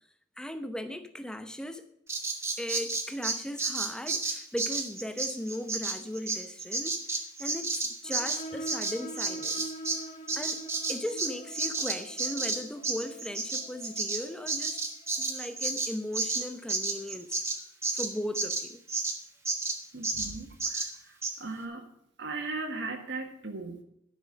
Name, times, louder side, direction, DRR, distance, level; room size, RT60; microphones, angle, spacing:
voice 1, 0.4-1.8 2.6-7.0 7.4-10.0 10.4-10.6 10.9-14.8 15.2-17.4 17.9-18.8, left 1 dB, 5° left, 0.7 m, -37 dB
Bird vocalization bird call bird song, 2.1-10.0 10.3-19.2 19.5-19.8 20.0-20.3 20.6-20.9 21.2-21.3, right 3 dB, 15° right, 1.3 m, -31 dB
sound 1, 8.0-15.3, right 1 dB, 35° left, 1.7 m, -45 dB
voice 2, 19.9-21.9 22.2-23.8, right 3 dB, 60° right, 1.5 m, -38 dB
11.5 x 6.2 x 7.5 m
head